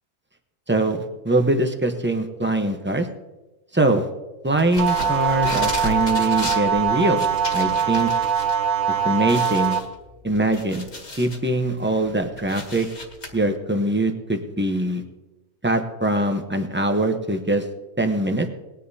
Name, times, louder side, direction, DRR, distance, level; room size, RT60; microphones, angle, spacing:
voice 1, 0.7-3.1 3.7-4.1 4.4-7.3 7.5-8.1 9.0-9.8 10.2-10.8 11.2-12.9 13.3-15.0 15.6-17.6 18.0-18.5, right 1 dB, 10° right, 5 dB, 0.6 m, -22 dB
sound 1, 4.6-8.5 8.9-9.0 9.3-11.5 11.9-13.3, left 2 dB, 45° left, 2.0 m, -34 dB
sound 2, 4.8-9.8, right 7 dB, 75° right, 1.3 m, -22 dB
20.0 x 10.0 x 2.8 m, 1.1 s
omnidirectional pair, 1.6 m